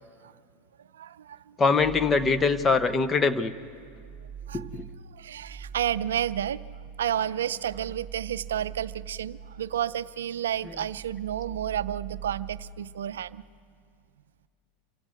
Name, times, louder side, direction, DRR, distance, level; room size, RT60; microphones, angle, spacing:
voice 1, 0.9-1.6 4.5-4.7 5.1-6.6 7.0-13.4, right 10 dB, 80° right, 16 dB, 0.5 m, -31 dB
voice 2, 1.6-3.5 4.5-4.8, left 4 dB, 25° left, 11 dB, 1.1 m, -23 dB
sound 1, 1.8-3.2 3.6-10.1 10.5-12.7, right 8 dB, 10° right, 7.3 m, -43 dB
26.5 x 16.0 x 9.3 m, 2.3 s
hypercardioid pair, 85°, 0 cm